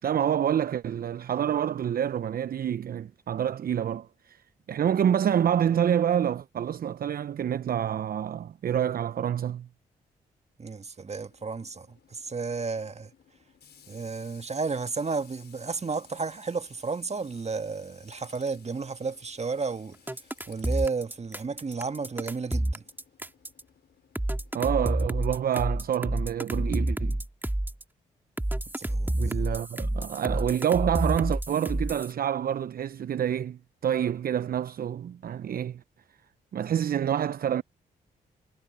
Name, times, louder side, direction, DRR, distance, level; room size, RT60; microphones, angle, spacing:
voice 1, 0.0-9.7 24.5-27.2 29.0-35.8 36.5-37.6, right 9 dB, 55° right, 0.6 m, -27 dB
voice 2, 10.6-13.1 13.9-20.0 20.5-22.8 28.8-29.4, right 4 dB, 35° right, 1.7 m, -32 dB
Tools, 11.2-25.6, left 8 dB, 65° left, 5.0 m, -58 dB
sound 1, 20.1-23.6 24.1-27.8 28.4-32.1, right 1 dB, 10° right, 2.3 m, -29 dB
supercardioid pair, 45°, 19 cm